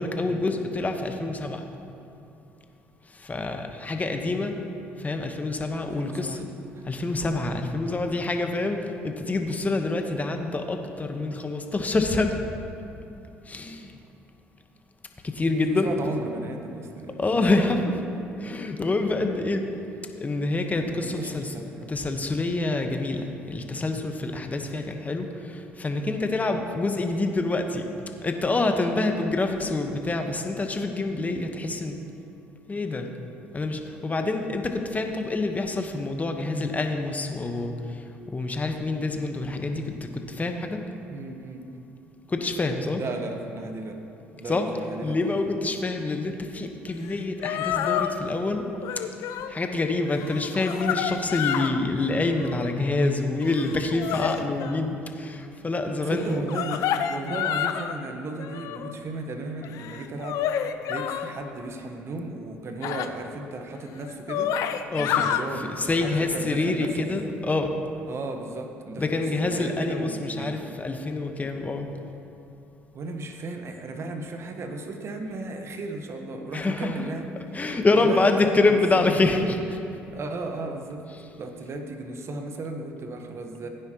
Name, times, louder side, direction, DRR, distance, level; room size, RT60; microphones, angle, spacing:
voice 1, 0.0-1.7 3.1-4.6 5.0-6.4 6.8-12.4 13.5-13.9 15.2-15.9 17.2-17.8 18.4-19.7 20.2-21.5 21.9-27.8 28.2-32.0 32.7-33.1 33.5-38.0 38.3-40.8 42.3-43.0 44.4-44.6 45.0-48.6 49.5-56.4 64.9-65.3 65.8-67.7 69.0-71.9 76.5-77.0 77.5-79.6, left 2 dB, 25° left, 5 dB, 1.2 m, -26 dB
voice 2, 5.9-6.4 15.7-17.7 20.9-22.2 25.9-26.1 41.1-41.9 42.9-44.0 44.3-45.4 56.0-67.1 68.1-70.7 72.9-79.3 80.1-81.0 81.4-83.7, right 2 dB, 45° right, 5 dB, 1.3 m, -35 dB
sound 1, 47.1-47.2 47.4-48.1 48.8-49.5 50.1-51.8 52.2-52.7 53.4-54.8 56.2-57.9 58.4-58.9 59.6-61.3 62.8-63.1 63.7-63.8 64.1-65.4 66.0-66.2, left 9 dB, 65° left, 0.5 m, -29 dB
16.0 x 9.7 x 3.0 m, 2.7 s
hypercardioid pair, 60°, 6 cm